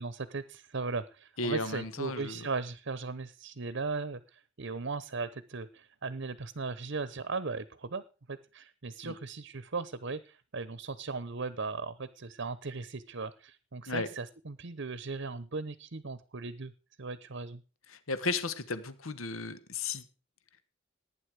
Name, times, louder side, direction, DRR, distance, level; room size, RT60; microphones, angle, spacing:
voice 1, 0.0-8.0 8.3-16.7 17.0-17.6, right 4 dB, 60° right, 15 dB, 0.9 m, -37 dB
voice 2, 1.4-2.5 9.0-9.1 13.9-14.1 17.9-20.0, left 3 dB, 80° left, 13 dB, 1.4 m, -34 dB
18.5 x 9.7 x 4.8 m, 0.35 s
head